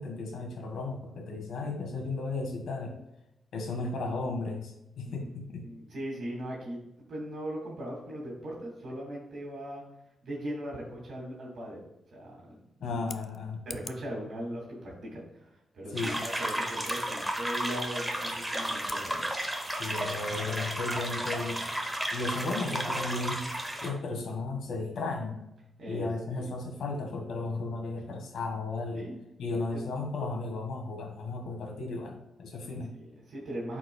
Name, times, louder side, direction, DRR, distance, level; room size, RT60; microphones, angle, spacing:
voice 1, 0.0-3.0 3.5-5.7 12.8-13.7 15.9-16.3 19.7-21.7 22.1-23.5 23.8-25.4 25.9-29.0 29.4-33.0, left 3 dB, 75° left, 2 dB, 1.6 m, -35 dB
voice 2, 5.6-6.8 7.1-9.8 10.2-11.9 12.1-13.0 13.7-15.5 15.7-19.3 25.8-26.5 28.9-29.2 29.7-29.8 33.0-33.8, equal, 55° right, -3 dB, 2.3 m, -39 dB
Scissors, 12.9-14.1 16.8-17.0 18.8-19.1, left 6 dB, 50° left, 0.4 m, -45 dB
sound 1, 16.0-23.9, right 1 dB, 5° right, 0.9 m, -33 dB
12.5 x 4.6 x 2.3 m, 0.89 s
wide cardioid pair, 165°, 0 cm